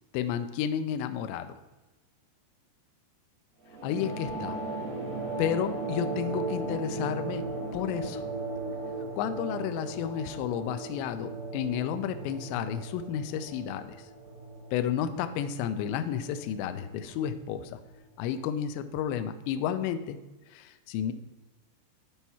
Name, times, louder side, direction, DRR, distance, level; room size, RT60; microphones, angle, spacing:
voice 1, 0.1-1.6 3.8-4.6 5.4-7.4 7.7-8.2 9.2-14.0 14.7-17.8 18.2-20.2 20.5-21.1, left 9 dB, 85° left, 9 dB, 2.6 m, -31 dB
sound 1, 3.7-18.6, right 2 dB, 85° right, 5.2 m, -37 dB
10.5 x 4.6 x 4.2 m, 1.1 s
omnidirectional pair, 5.7 m